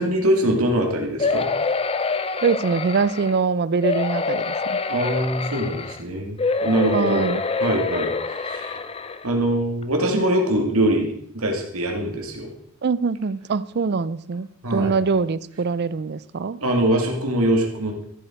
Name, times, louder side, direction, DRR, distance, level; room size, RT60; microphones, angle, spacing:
voice 1, 0.0-1.4 4.9-7.3 7.6-8.7 9.2-11.1 11.3-12.5 14.6-14.9 16.6-17.9, right 1 dB, 75° right, 2 dB, 2.5 m, -23 dB
sound 1, 1.2-3.4 3.8-6.0 6.4-9.2 9.8-9.9 10.2-10.3, left 4 dB, 25° left, 0.6 m, -26 dB
voice 2, 2.4-4.8 6.9-7.4 12.8-16.6, right 4 dB, 50° right, 18 dB, 0.5 m, -23 dB
14.0 x 7.7 x 4.6 m, 0.68 s
head